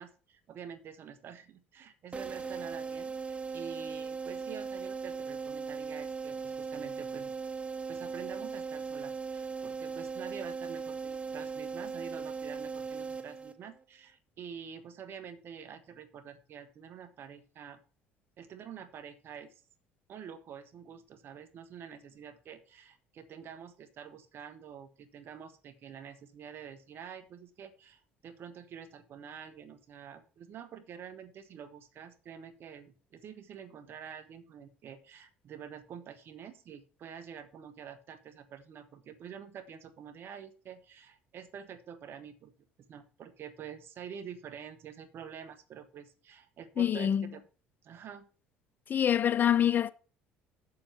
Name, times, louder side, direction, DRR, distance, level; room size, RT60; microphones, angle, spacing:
voice 1, 0.0-7.3 7.9-17.8 18.4-19.5 20.1-42.5 42.9-47.4 47.8-48.3, right 8 dB, 55° right, 1.5 m, -47 dB
sound 1, 2.1-13.8, right 5 dB, 25° right, 1.3 m, -38 dB
voice 2, 46.8-47.3 48.9-49.9, left 9 dB, 40° left, 0.7 m, -25 dB
7.4 x 7.0 x 6.7 m
hypercardioid pair, 65°, 5 cm